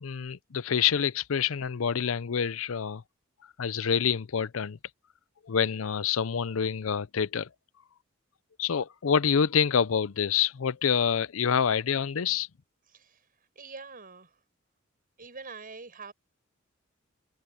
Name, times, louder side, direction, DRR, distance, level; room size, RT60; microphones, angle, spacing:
voice 1, 0.0-3.0 3.6-4.8 5.5-7.5 8.6-12.5, left 7 dB, 75° left, 0.6 m, -27 dB
voice 2, 13.6-14.3 15.2-16.1, right 4 dB, 45° right, 6.0 m, -43 dB
open air
head